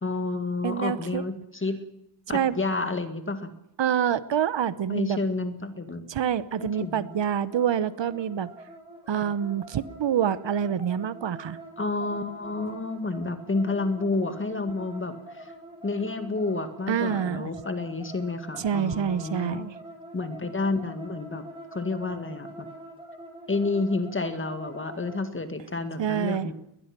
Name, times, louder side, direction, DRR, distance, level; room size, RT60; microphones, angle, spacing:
voice 1, 0.0-1.8 2.3-3.5 4.9-6.0 6.6-7.1 9.1-9.3 11.8-15.5 15.8-19.7 20.1-21.4 21.7-22.7 23.5-26.5, left 3 dB, 25° left, 9 dB, 1.9 m, -30 dB
voice 2, 0.6-1.2 2.3-2.6 3.8-5.2 6.1-8.5 9.1-11.6 16.9-17.5 18.6-19.7 26.0-26.5, right 8 dB, 70° right, 16 dB, 1.0 m, -26 dB
sound 1, 6.6-25.2, right 1 dB, 10° right, 4.9 m, -45 dB
21.5 x 21.0 x 6.1 m, 0.81 s
wide cardioid pair, 170°, 45 cm